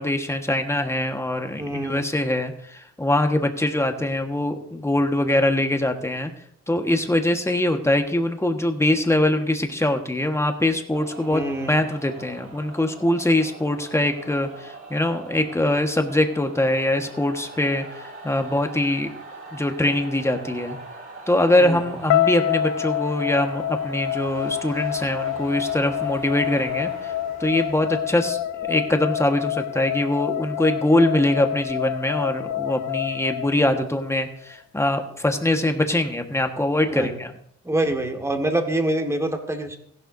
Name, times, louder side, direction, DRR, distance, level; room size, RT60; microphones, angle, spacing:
voice 1, 0.0-6.3 6.7-19.1 19.5-20.8 21.3-27.1 27.4-37.3, left 1 dB, 10° left, 5 dB, 1.4 m, -23 dB
voice 2, 1.6-2.0 11.3-11.8 21.6-22.0 36.9-37.1 37.6-39.8, right 1 dB, 10° right, 4 dB, 1.8 m, -26 dB
sound 1, 10.9-29.4, right 3 dB, 45° right, 5.2 m, -41 dB
sound 2, 22.1-34.2, left 11 dB, 85° left, 0.5 m, -27 dB
15.5 x 11.5 x 2.7 m, 0.69 s
cardioid pair, 90°, 30 cm